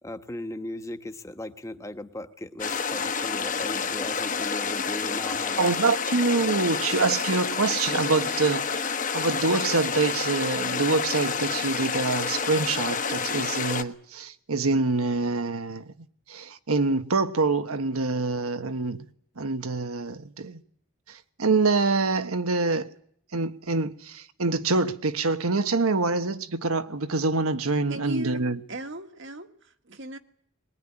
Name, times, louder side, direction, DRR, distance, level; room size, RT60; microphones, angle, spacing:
voice 1, 0.0-5.7, left 1 dB, 15° left, 1.3 m, -37 dB
sound 1, 2.6-13.8, left 5 dB, 35° left, 1.2 m, -29 dB
voice 2, 5.6-8.8 9.1-15.8 16.3-19.0 19.4-20.6 21.4-22.9 23.3-28.6, right 3 dB, 85° right, 1.3 m, -25 dB
voice 3, 27.9-30.2, right 1 dB, 55° right, 1.7 m, -37 dB
21.5 x 21.0 x 10.0 m
head